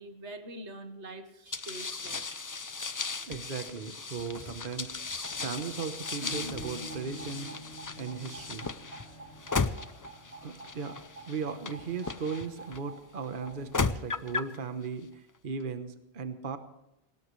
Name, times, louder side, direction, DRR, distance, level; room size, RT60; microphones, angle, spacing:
voice 1, 0.0-2.5 2.9-3.3, right 2 dB, 90° right, 8 dB, 1.7 m, -45 dB
sound 1, 1.5-12.8 13.5-14.6, left 4 dB, 30° left, 0.3 m, -36 dB
voice 2, 3.3-5.0 5.4-7.5 8.0-8.7 10.4-11.0 11.3-16.6, right 5 dB, 50° right, 9 dB, 1.2 m, -37 dB
sound 2, 5.1-13.7, right 3 dB, 70° right, 2.3 m, -50 dB
Acoustic guitar / Strum, 6.2-11.4, right 1 dB, 75° left, 2.6 m, -46 dB
19.5 x 17.5 x 3.2 m, 0.86 s
omnidirectional pair, 1.1 m